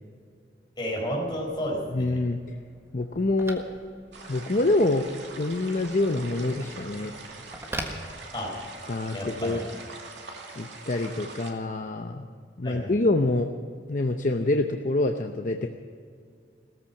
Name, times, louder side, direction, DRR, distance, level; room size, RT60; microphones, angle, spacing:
voice 1, 0.8-2.2 8.3-8.5 9.1-9.6 12.6-12.9, equal, 25° left, -3 dB, 5.0 m, -31 dB
Telephone, 1.5-8.8, right 1 dB, 15° right, 1.5 m, -43 dB
voice 2, 1.9-2.4 2.9-3.6 4.3-5.1 5.4-7.1 8.9-9.6 10.6-12.2 12.6-13.5 13.9-15.7, left 2 dB, 45° left, 5 dB, 0.7 m, -26 dB
sound 1, 4.1-11.5, right 3 dB, 65° right, 2.5 m, -43 dB
17.5 x 14.0 x 5.8 m, 2.2 s
head